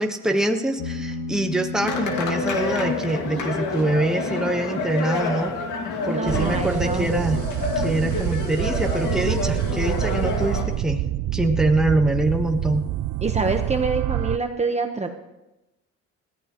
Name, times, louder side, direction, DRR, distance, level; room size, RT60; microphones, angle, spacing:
voice 1, 0.0-5.5 6.0-7.4 7.7-11.0 11.3-12.9, right 1 dB, ahead, 3 dB, 1.4 m, -24 dB
sound 1, 0.8-9.8, left 3 dB, 55° left, 2.7 m, -38 dB
sound 2, 1.8-10.7, left 3 dB, 85° left, 2.3 m, -28 dB
voice 2, 6.1-7.1 13.2-15.1, right 3 dB, 20° right, 4 dB, 1.2 m, -26 dB
sound 3, 6.3-14.4, right 14 dB, 70° right, 0.5 m, -27 dB
20.5 x 15.0 x 3.1 m, 0.97 s
cardioid pair, 90°, 30 cm